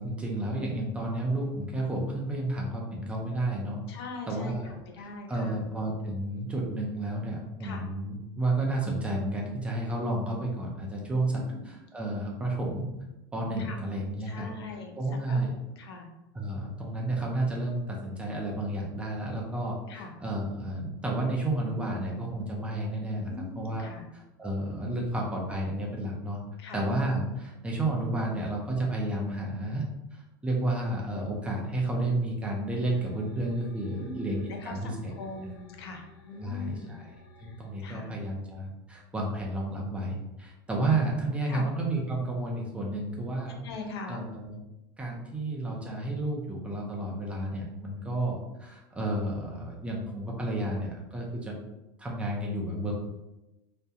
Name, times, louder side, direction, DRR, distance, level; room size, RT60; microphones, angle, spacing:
voice 1, 0.0-3.8 4.3-4.8 5.3-12.9 13.3-14.5 15.0-15.5 16.3-23.3 23.6-23.9 24.4-26.4 26.7-29.8 30.1-35.1 36.4-37.0 37.4-43.6 44.1-44.6 45.0-51.6 52.0-52.9, right 1 dB, 10° right, -2 dB, 0.4 m, -31 dB
voice 2, 3.9-5.7 7.6-7.9 11.3-11.6 13.6-13.8 14.2-15.4 15.8-16.1 19.9-20.2 23.3-24.1 26.6-26.8 33.9-37.0 37.5-38.1 41.5-41.7 43.5-44.3, left 3 dB, 90° left, 3 dB, 0.5 m, -41 dB
sound 1, 32.7-37.7, left 2 dB, 40° left, 0.6 m, -54 dB
2.3 x 2.1 x 2.7 m, 0.97 s
supercardioid pair, 140°, 13 cm